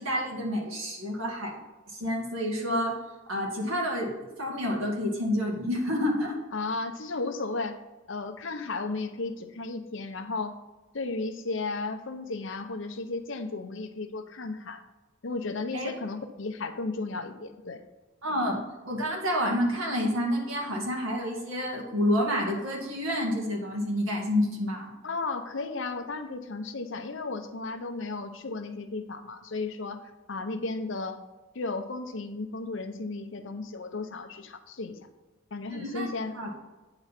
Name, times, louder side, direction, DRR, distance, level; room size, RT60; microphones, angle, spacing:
voice 1, 0.0-1.6 1.9-3.0 3.3-6.4 15.7-15.9 18.2-24.9 35.7-36.1 36.3-36.5, equal, 75° right, -1 dB, 2.1 m, -29 dB
voice 2, 6.5-7.8 8.1-10.6 10.9-14.8 15.2-17.8 25.0-31.2 31.5-35.0 35.5-36.4, left 3 dB, 65° left, 8 dB, 0.7 m, -34 dB
9.1 x 3.9 x 5.7 m, 1.2 s
head